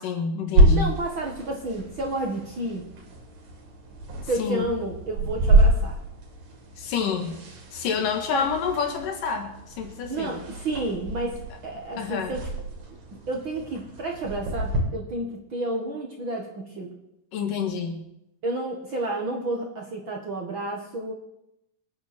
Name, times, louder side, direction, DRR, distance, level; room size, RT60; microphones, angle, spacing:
voice 1, 0.0-0.9 4.4-4.6 6.8-7.4 7.7-10.4 12.0-12.3 17.3-18.0, left 6 dB, 75° left, 4 dB, 3.3 m, -28 dB
sound 1, 0.6-14.8, right 1 dB, 80° right, 4.5 m, -27 dB
voice 2, 0.7-2.9 4.3-6.0 8.3-8.4 10.1-12.4 13.3-16.9 18.4-21.1, right 2 dB, 45° right, 0 dB, 1.7 m, -31 dB
25.0 x 9.4 x 4.4 m, 0.84 s
omnidirectional pair, 3.9 m